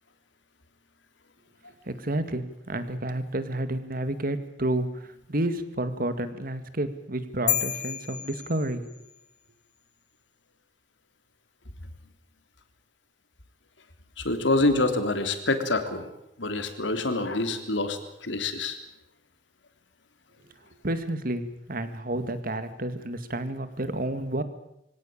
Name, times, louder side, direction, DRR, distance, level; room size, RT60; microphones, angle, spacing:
voice 1, 1.9-8.8 20.8-21.4 21.7-24.4, right 1 dB, 50° right, 11 dB, 2.2 m, -30 dB
sound 1, 7.5-9.2, left 11 dB, 45° left, 1.2 m, -31 dB
voice 2, 14.2-16.1 16.4-18.8, left 2 dB, 85° left, 8 dB, 3.2 m, -26 dB
24.0 x 17.5 x 8.8 m, 0.82 s
head